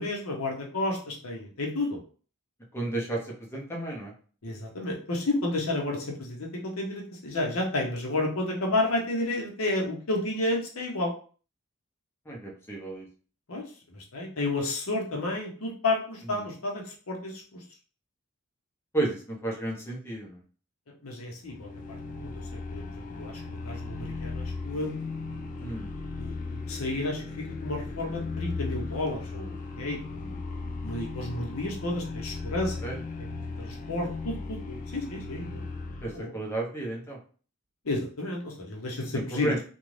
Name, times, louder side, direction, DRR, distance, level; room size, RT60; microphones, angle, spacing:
voice 1, 0.0-2.0 4.4-11.1 13.5-17.6 21.0-25.0 26.2-32.8 33.2-33.3 33.6-36.3 37.8-39.5, left 2 dB, 80° left, 0 dB, 0.9 m, -32 dB
voice 2, 2.7-4.1 12.3-13.1 16.4-16.5 18.9-20.4 25.6-25.9 32.8-33.0 36.0-37.2 39.1-39.6, right 2 dB, 10° left, -2 dB, 0.7 m, -32 dB
sound 1, 21.5-36.2, left 3 dB, 40° left, 0.3 m, -37 dB
2.6 x 2.3 x 3.2 m, 0.40 s
head